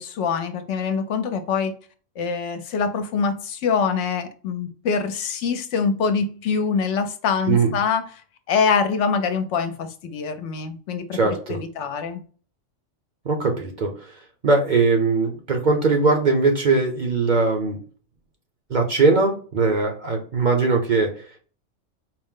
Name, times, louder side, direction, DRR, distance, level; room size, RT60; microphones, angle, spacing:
voice 1, 0.0-1.7 2.2-8.0 8.5-11.2 11.5-12.2, left 5 dB, 70° left, 0.9 m, -24 dB
voice 2, 11.1-11.6 13.2-17.8 18.7-21.4, right 3 dB, 45° right, 0.7 m, -20 dB
4.4 x 2.1 x 3.6 m
omnidirectional pair, 1.3 m